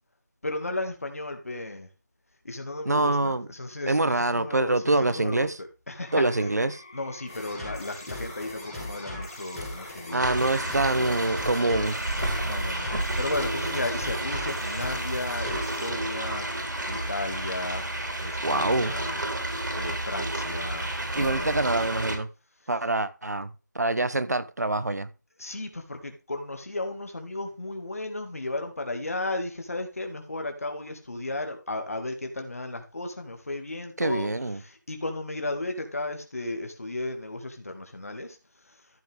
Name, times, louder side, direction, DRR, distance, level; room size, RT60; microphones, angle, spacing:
voice 1, 0.4-1.9 2.5-6.5 6.9-10.8 12.4-12.9 13.2-16.4 16.9-17.8 18.2-19.2 19.7-21.6 25.4-34.3 34.6-38.3, left 2 dB, 50° left, 2.1 m, -34 dB
voice 2, 2.8-3.5 3.9-5.6 6.1-6.8 10.1-12.0 18.4-18.9 21.1-22.3 22.7-25.1 34.0-34.6, right 2 dB, 60° right, 1.1 m, -25 dB
sound 1, 6.1-18.7, left 2 dB, 15° left, 1.0 m, -48 dB
sound 2, 7.3-15.9, left 1 dB, ahead, 2.5 m, -39 dB
sound 3, 10.2-22.2, right 1 dB, 80° right, 4.0 m, -31 dB
14.0 x 5.8 x 3.6 m
figure-of-eight pair, 175°, 10 cm